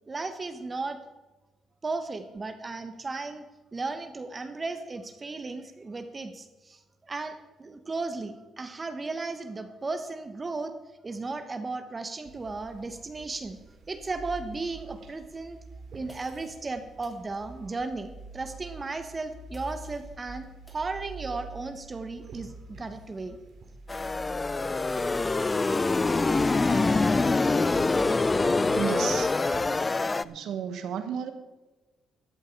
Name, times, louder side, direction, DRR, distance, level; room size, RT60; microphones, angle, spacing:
voice 1, 0.1-1.0 1.8-3.4 3.7-10.7 11.0-13.6 13.9-15.6 15.9-23.4, right 3 dB, 30° right, 9 dB, 1.1 m, -35 dB
sound 1, 12.2-29.6, right 3 dB, 60° right, 2.9 m, -46 dB
sound 2, 16.1-16.7 17.0-17.2 19.5-20.1 20.7-20.9, equal, ahead, 3.2 m, -57 dB
sound 3, 23.9-30.2, left 3 dB, 25° left, 0.4 m, -25 dB
voice 2, 28.7-29.5 30.2-31.3, right 8 dB, 80° right, 9 dB, 1.4 m, -33 dB
13.5 x 10.0 x 4.6 m, 1.1 s
cardioid pair, 90°, 0 cm